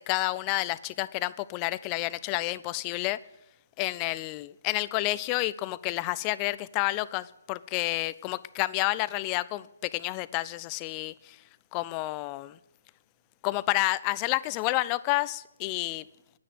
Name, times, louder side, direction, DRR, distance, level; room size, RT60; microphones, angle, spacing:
voice 1, 0.0-3.2 3.8-11.4 11.7-12.6 13.4-16.1, left 19 dB, 25° left, 0.5 m, -30 dB
10.5 x 10.0 x 9.4 m
figure-of-eight pair, 135°, 0 cm